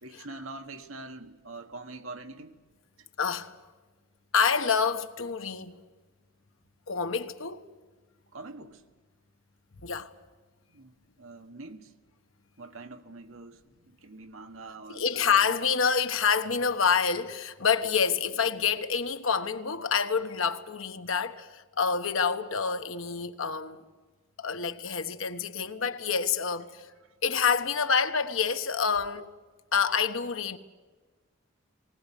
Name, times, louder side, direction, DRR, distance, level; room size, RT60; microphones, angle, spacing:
voice 1, 0.0-2.6 3.0-3.1 8.3-8.8 10.7-11.9 12.6-15.3 27.0-27.1, right 3 dB, 90° right, 1.5 m, -44 dB
voice 2, 3.2-3.5 4.3-5.8 6.9-7.6 9.8-10.1 14.9-23.8 24.4-26.9 27.2-29.3 29.7-30.6, left 6 dB, 80° left, 1.2 m, -27 dB
19.5 x 19.5 x 10.0 m
head